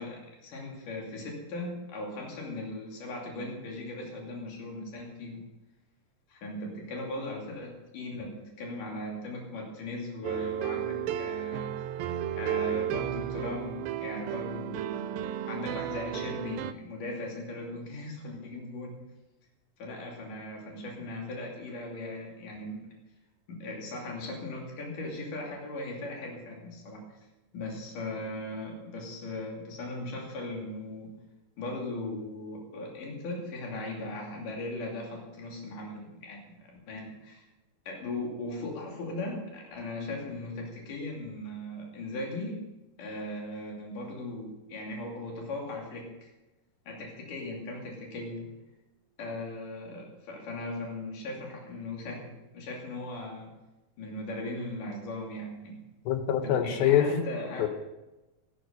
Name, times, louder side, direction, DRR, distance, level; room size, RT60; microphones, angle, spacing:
voice 1, 0.0-5.4 6.3-11.9 12.4-19.0 19.8-22.9 23.5-27.1 27.5-31.1 31.6-37.5 37.9-42.6 43.0-46.3 46.9-48.5 49.2-53.5 54.0-55.8 56.4-57.7, left 2 dB, 65° left, -1 dB, 4.1 m, -38 dB
sound 1, 10.2-16.7, right 11 dB, 90° right, 2.4 m, -33 dB
voice 2, 56.1-57.1 57.6-57.7, left 10 dB, 90° left, 8 dB, 2.9 m, -24 dB
14.5 x 11.5 x 5.2 m, 1.0 s
omnidirectional pair, 4.1 m